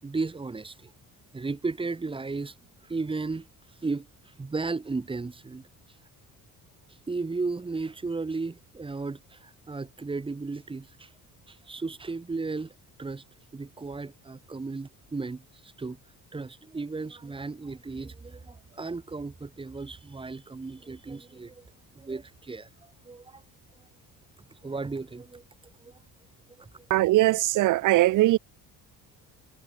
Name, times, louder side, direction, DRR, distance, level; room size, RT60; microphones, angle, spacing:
voice 1, 0.0-0.9 1.3-2.5 2.8-3.5 3.8-4.1 4.4-5.6 7.1-11.1 11.5-12.7 13.0-13.2 13.5-16.0 16.3-21.6 21.9-23.4 24.5-25.4 25.8-26.0 26.6-26.9, right 3 dB, 15° right, 3.1 m, -35 dB
voice 2, 26.9-28.4, right 17 dB, 60° right, 0.7 m, -21 dB
cardioid pair, 165°, 36 cm